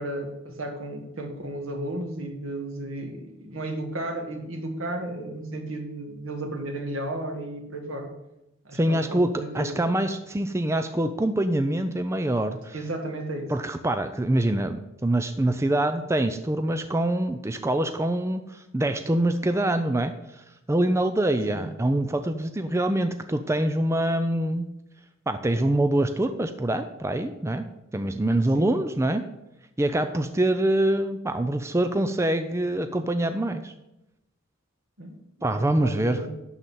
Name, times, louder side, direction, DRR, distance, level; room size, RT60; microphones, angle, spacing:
voice 1, 0.0-8.1 8.7-9.7 12.7-13.5 21.5-21.7 28.5-28.7 35.0-35.2 35.5-36.3, right 1 dB, 75° right, 3 dB, 1.8 m, -34 dB
voice 2, 8.7-12.7 13.5-20.1 20.7-24.7 25.3-27.6 27.9-29.2 29.8-33.7 35.4-36.2, right 1 dB, 15° right, 8 dB, 0.4 m, -25 dB
11.5 x 4.0 x 7.5 m, 0.91 s
head